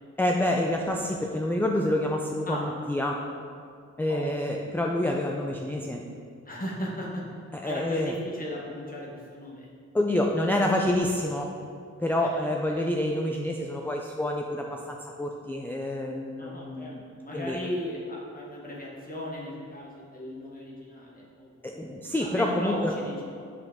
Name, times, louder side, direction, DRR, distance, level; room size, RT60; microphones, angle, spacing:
voice 1, 0.2-3.2 4.0-6.0 7.5-8.1 9.9-11.5 12.0-17.0 17.3-17.6 21.6-22.9, left 1 dB, 5° left, 1 dB, 0.3 m, -27 dB
voice 2, 5.0-5.4 6.4-7.2 7.6-9.7 12.2-12.5 16.4-21.5 22.2-23.5, left 1 dB, 30° left, -4 dB, 1.1 m, -37 dB
7.7 x 4.8 x 3.5 m, 2.3 s
wide cardioid pair, 145°, 30 cm